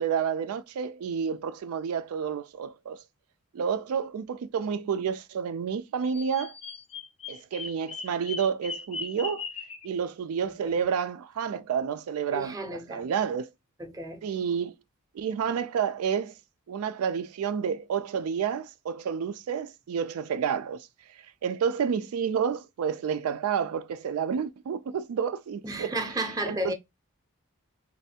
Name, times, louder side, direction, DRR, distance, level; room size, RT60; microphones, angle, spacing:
voice 1, 0.0-3.0 3.5-6.5 7.3-9.5 9.8-12.6 12.9-13.5 14.2-14.7 15.1-16.3 16.7-20.9 21.4-26.0 26.5-26.7, right 7 dB, 85° right, 0.3 m, -30 dB
Bird vocalization bird call bird song, 6.0-9.9, left 4 dB, 30° left, 0.5 m, -39 dB
voice 2, 10.4-10.9 12.3-13.1 13.8-14.3 25.6-26.7, right 1 dB, 15° right, 0.6 m, -33 dB
3.2 x 2.6 x 2.7 m
head